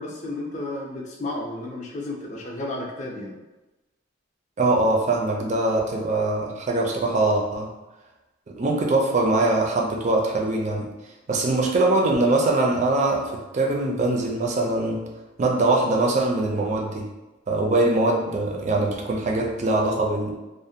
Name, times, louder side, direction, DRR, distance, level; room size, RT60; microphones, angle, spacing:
voice 1, 0.0-3.3, left 2 dB, 40° left, -2 dB, 0.4 m, -32 dB
voice 2, 4.6-7.7 8.5-10.9 11.3-15.0 15.4-17.1 17.5-20.4, right 2 dB, 40° right, 0 dB, 0.4 m, -22 dB
2.4 x 2.1 x 2.6 m, 1.1 s
head